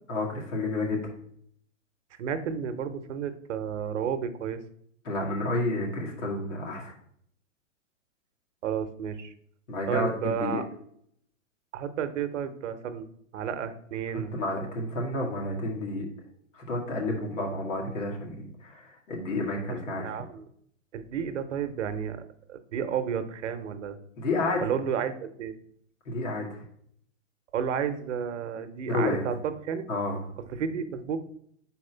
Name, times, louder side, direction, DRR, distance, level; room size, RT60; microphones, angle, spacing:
voice 1, 0.1-1.1 5.0-6.9 9.7-10.6 14.3-16.1 16.5-20.2 24.2-24.7 26.1-26.6 28.9-29.3 29.9-30.2, left 2 dB, 75° left, -1 dB, 2.2 m, -30 dB
voice 2, 2.2-4.6 8.6-9.3 9.9-10.6 11.7-13.1 13.3-14.3 20.0-20.5 20.9-22.2 22.5-24.0 24.6-25.6 27.5-29.9 30.5-31.2, right 7 dB, 70° right, 9 dB, 0.8 m, -31 dB
4.7 x 4.3 x 5.5 m, 0.68 s
hypercardioid pair, 155°, 38 cm